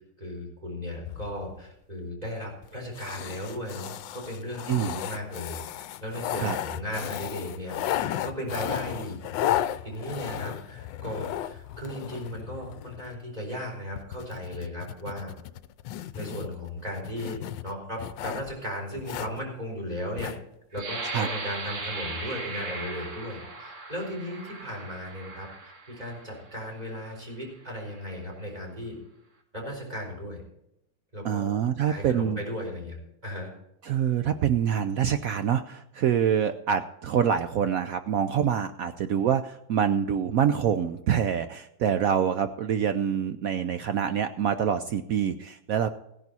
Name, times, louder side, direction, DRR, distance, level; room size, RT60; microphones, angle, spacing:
voice 1, 0.2-7.8 8.2-9.2 9.8-15.3 16.1-20.3 20.7-25.5 25.9-29.0 29.5-30.4 31.1-31.4 31.9-33.5, equal, 20° right, -1 dB, 4.7 m, -36 dB
sound 1, 1.0-1.7 2.6-2.7 3.0-13.2 14.0-18.5 19.0-19.4 20.2-20.4 20.8-20.9, left 12 dB, 75° left, 1.3 m, -34 dB
voice 2, 4.7-5.0 6.4-6.6 21.1-21.3 31.2-32.4 33.8-45.9, right 8 dB, 75° right, 10 dB, 0.8 m, -26 dB
sound 2, 20.7-26.4 27.1-27.2 27.7-28.1, right 3 dB, 40° right, 2.1 m, -38 dB
16.5 x 10.5 x 4.1 m, 0.82 s
omnidirectional pair, 2.1 m